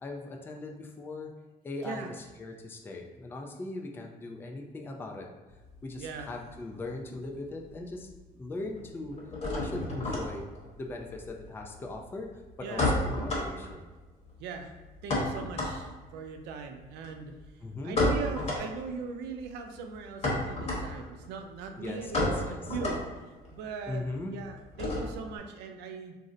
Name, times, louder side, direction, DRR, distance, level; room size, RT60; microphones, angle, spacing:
voice 1, 0.0-1.3 1.6-5.3 5.8-9.2 9.5-10.5 10.8-13.8 17.6-18.0 21.8-22.8 23.9-24.4, left 2 dB, 15° left, 2 dB, 0.3 m, -39 dB
sound 1, 5.5-7.1 7.4-8.1 8.3-25.4, left 1 dB, 40° left, 1.0 m, -33 dB
voice 2, 14.4-14.8 15.0-17.4 17.8-23.1 23.5-24.1 24.3-26.1, right 5 dB, 85° right, 5 dB, 0.4 m, -40 dB
2.5 x 2.0 x 3.7 m, 1.2 s
cardioid pair, 110°, 17 cm